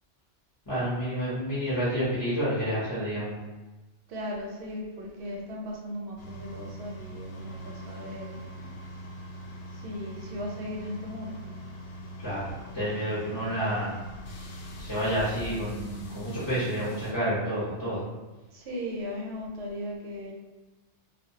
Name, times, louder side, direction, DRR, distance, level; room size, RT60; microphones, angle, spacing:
voice 1, 0.7-3.4 12.2-12.5 12.7-14.0 14.8-18.0, equal, 30° left, -11 dB, 0.5 m, -29 dB
voice 2, 4.1-8.4 9.7-11.5 18.5-20.3, left 1 dB, 70° right, -1 dB, 0.8 m, -37 dB
sound 1, 6.2-17.1, equal, 65° left, 0.8 m, -42 dB
2.2 x 2.2 x 2.7 m, 1.2 s
omnidirectional pair, 1.2 m